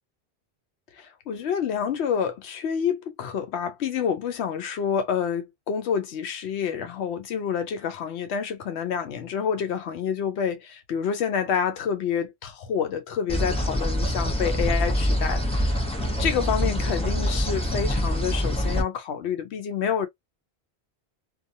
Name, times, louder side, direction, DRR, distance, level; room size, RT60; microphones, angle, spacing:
voice 1, 1.0-15.8 16.2-20.1, left 7 dB, 90° left, 0.9 m, -28 dB
sound 1, 13.3-18.8, equal, 5° left, 0.6 m, -25 dB
2.5 x 2.3 x 2.6 m
omnidirectional pair, 1.1 m